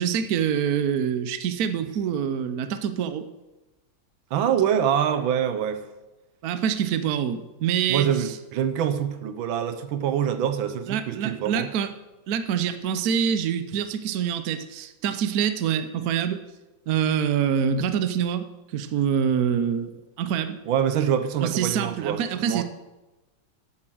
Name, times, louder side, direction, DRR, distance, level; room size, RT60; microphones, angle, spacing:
voice 1, 0.0-3.3 6.4-8.3 10.9-11.9 12.3-16.4 16.9-20.6 21.4-22.6, right 8 dB, 60° right, 11 dB, 1.1 m, -25 dB
voice 2, 4.3-5.9 7.9-11.7 20.7-22.6, right 9 dB, 80° right, 10 dB, 1.6 m, -25 dB
8.9 x 7.8 x 7.8 m, 1.1 s
omnidirectional pair, 2.1 m